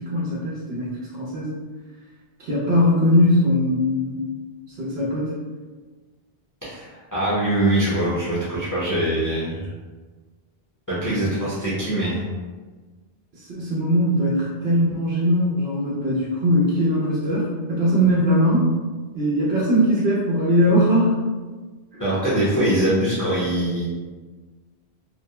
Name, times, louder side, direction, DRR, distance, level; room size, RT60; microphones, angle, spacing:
voice 1, 0.0-1.6 2.4-4.2 4.8-5.3 11.0-11.2 13.3-18.7 19.1-21.1 21.9-22.0, equal, 80° right, -7 dB, 0.9 m, -20 dB
voice 2, 6.6-9.7 10.9-12.2 22.0-23.9, right 1 dB, 25° left, -10 dB, 0.6 m, -23 dB
2.3 x 2.1 x 2.7 m, 1.3 s
omnidirectional pair, 1.0 m